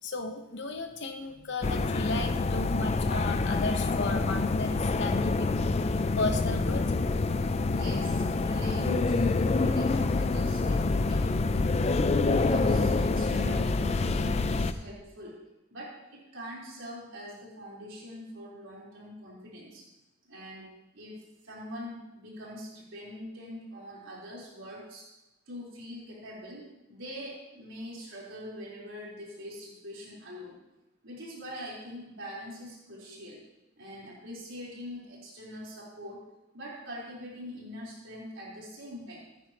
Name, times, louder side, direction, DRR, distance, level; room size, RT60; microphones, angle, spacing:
voice 1, 0.0-5.5 5.9-6.8, left 3 dB, 55° left, 6 dB, 1.0 m, -34 dB
sound 1, 1.6-14.7, left 3 dB, 30° left, 0.4 m, -27 dB
voice 2, 7.4-11.7 12.4-15.4 15.7-19.8 20.3-25.0 25.5-30.6 31.0-33.4 33.8-36.2 36.5-39.2, equal, 65° right, -5 dB, 4.0 m, -43 dB
15.0 x 10.0 x 3.0 m, 0.97 s
head